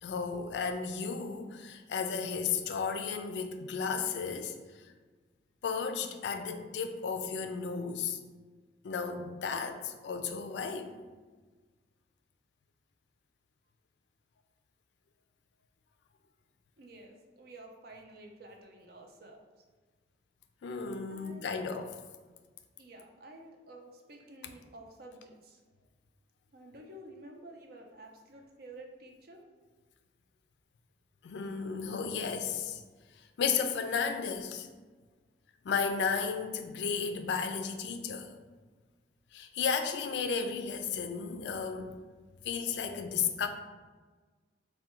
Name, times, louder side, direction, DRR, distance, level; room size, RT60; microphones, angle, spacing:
voice 1, 0.0-4.6 5.6-8.2 8.8-10.9 20.6-21.9 31.2-32.8 33.2-34.7 35.6-38.3 39.3-41.9 42.4-43.5, left 6 dB, 75° left, 7 dB, 0.4 m, -33 dB
voice 2, 16.8-19.5 21.1-21.6 22.8-25.6 26.5-29.4, right 1 dB, 55° right, 2 dB, 0.5 m, -51 dB
3.5 x 2.2 x 4.3 m, 1.4 s
head